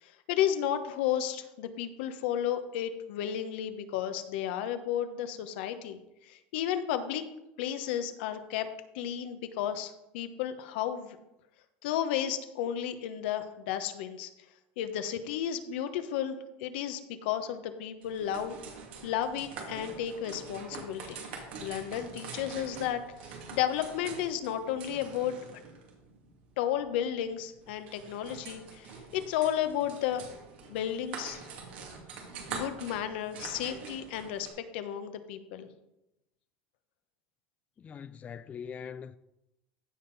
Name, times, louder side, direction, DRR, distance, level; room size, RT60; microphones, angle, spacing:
voice 1, 0.0-7.2 7.6-8.7 8.9-11.2 11.8-14.3 14.8-18.6 19.0-21.2 21.6-25.3 26.6-30.2 30.7-31.5 32.5-35.7, left 10 dB, 75° left, 1.1 m, -33 dB
sound 1, 18.0-34.5, right 5 dB, 85° right, 2.5 m, -45 dB
voice 2, 37.8-39.2, left 7 dB, 25° left, 0.3 m, -42 dB
15.0 x 5.5 x 4.1 m
supercardioid pair, 120°, 6 cm